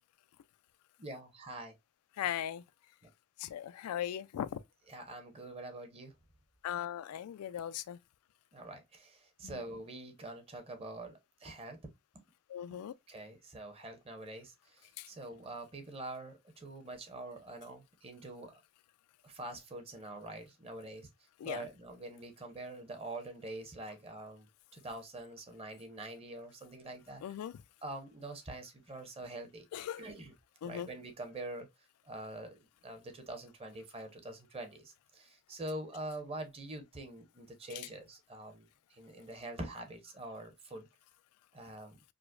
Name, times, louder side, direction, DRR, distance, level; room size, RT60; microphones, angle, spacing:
voice 1, 1.0-1.8 4.9-6.1 8.5-11.8 13.1-18.6 19.2-21.1 21.4-24.5 24.7-27.2 27.8-29.6 30.0-30.3 30.6-31.7 32.0-40.9 41.5-42.0, right 2 dB, 25° right, 0.8 m, -45 dB
voice 2, 2.2-2.6 3.4-4.6 6.6-8.0 9.4-9.6 12.5-12.9 15.0-15.1 21.4-21.7 27.2-27.5 29.7-30.0 30.6-30.9 37.7-37.9, left 10 dB, 85° left, 0.3 m, -38 dB
4.8 x 2.1 x 2.4 m
head